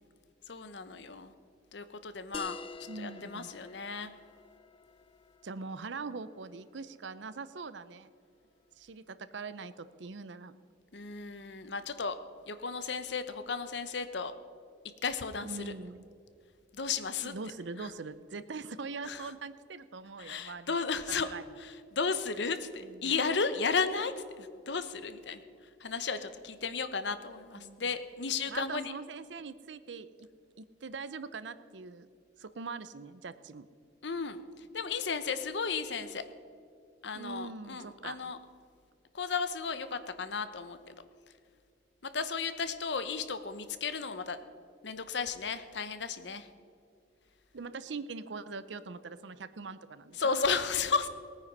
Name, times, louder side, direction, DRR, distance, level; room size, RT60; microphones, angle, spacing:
voice 1, 0.5-1.3 1.7-2.6 3.0-4.1 10.9-12.2 12.5-14.3 15.0-15.7 16.7-17.3 17.8-17.9 19.1-19.2 20.2-21.3 21.6-25.4 25.8-28.9 34.0-34.4 34.7-36.2 37.0-38.4 39.1-40.9 42.1-44.4 44.8-46.5 50.2-51.1, left 5 dB, 70° left, 11 dB, 0.9 m, -34 dB
sound 1, 2.3-7.4, left 4 dB, 30° left, 0.5 m, -48 dB
voice 2, 2.9-3.5 5.4-8.1 8.8-10.5 15.4-16.0 17.2-20.7 21.1-21.5 22.8-23.1 27.6-27.9 28.5-30.3 30.6-32.1 32.4-33.7 37.1-38.3 47.5-50.4, right 4 dB, 80° right, 14 dB, 0.6 m, -42 dB
18.5 x 9.4 x 5.4 m, 2.4 s
head